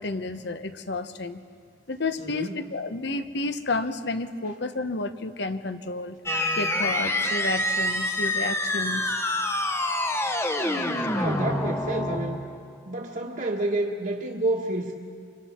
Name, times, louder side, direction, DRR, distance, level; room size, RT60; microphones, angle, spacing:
voice 1, 0.0-1.4 1.9-6.2 6.6-9.1 11.0-11.1, left 3 dB, 60° left, 9 dB, 1.0 m, -31 dB
voice 2, 2.2-2.6 11.1-12.4 12.8-14.9, right 2 dB, 45° right, -4 dB, 1.4 m, -29 dB
sound 1, 6.3-12.8, left 1 dB, 15° left, 0.9 m, -27 dB
29.5 x 26.0 x 4.4 m, 2.3 s
head